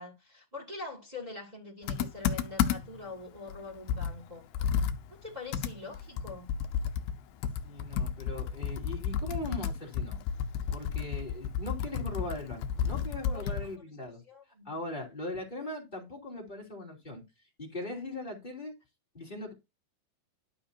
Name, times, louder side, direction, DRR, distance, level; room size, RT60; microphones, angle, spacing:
voice 1, 0.0-4.5 5.2-6.5 13.2-13.6 14.3-14.7, left 3 dB, 25° right, 1.0 m, -44 dB
Computer keyboard, 1.9-3.1 3.5-3.6 3.9-13.8, left 8 dB, 75° left, 2.4 m, -32 dB
voice 2, 7.6-10.2 10.7-14.2 14.6-17.2 17.6-18.7 19.1-19.5, left 2 dB, 15° left, 2.1 m, -40 dB
13.0 x 5.7 x 2.8 m
omnidirectional pair, 5.4 m